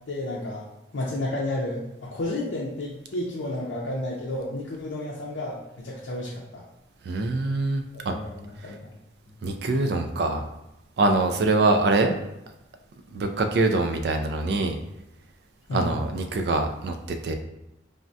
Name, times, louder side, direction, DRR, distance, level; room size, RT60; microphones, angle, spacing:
voice 1, 0.1-0.6 0.9-6.6 8.1-8.9 15.7-15.9, left 1 dB, 80° left, -6 dB, 0.5 m, -31 dB
voice 2, 7.1-8.1 9.4-10.4 11.0-12.1 13.1-14.8 15.7-17.0 17.2-17.3, right 2 dB, 55° right, 6 dB, 0.3 m, -24 dB
3.4 x 2.1 x 2.6 m, 0.90 s
head